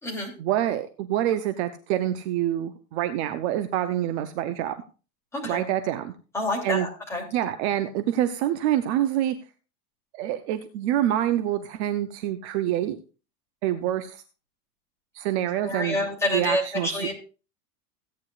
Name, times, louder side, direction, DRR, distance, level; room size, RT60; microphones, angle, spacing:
voice 1, 0.4-4.7 5.4-6.1 6.6-6.9 7.3-9.3 10.1-13.0 13.6-14.2 15.1-16.0 16.3-17.1, right 12 dB, 45° right, 9 dB, 0.7 m, -26 dB
voice 2, 6.3-7.2 15.6-17.1, left 1 dB, 5° left, -4 dB, 2.9 m, -28 dB
16.0 x 9.5 x 2.4 m, 0.34 s
supercardioid pair, 175°, 47 cm